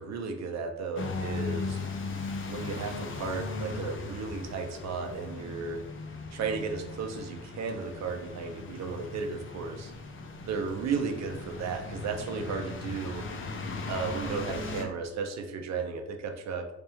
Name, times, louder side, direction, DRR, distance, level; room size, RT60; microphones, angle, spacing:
voice 1, 0.0-1.8 2.5-5.8 6.3-9.9 10.5-13.3 13.9-16.7, right 5 dB, 60° right, 5 dB, 0.7 m, -34 dB
sound 1, 1.0-14.8, left 3 dB, 45° left, 0.7 m, -38 dB
3.3 x 2.9 x 3.4 m, 0.87 s
cardioid pair, 90°, 30 cm